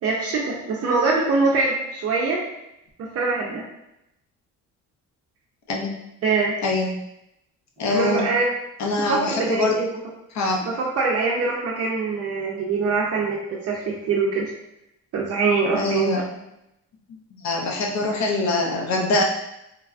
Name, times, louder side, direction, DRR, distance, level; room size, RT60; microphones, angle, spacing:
voice 1, 0.0-2.4 3.0-3.6 6.2-6.5 7.9-8.5 8.9-9.9 10.6-14.5 15.1-16.2, right 4 dB, 50° right, -3 dB, 0.5 m, -23 dB
voice 2, 6.6-6.9 7.8-8.2 8.8-9.8 10.3-10.6 15.7-16.2 17.4-19.2, left 2 dB, 60° left, 0 dB, 0.6 m, -23 dB
3.2 x 2.2 x 2.4 m, 0.85 s
cardioid pair, 140°, 31 cm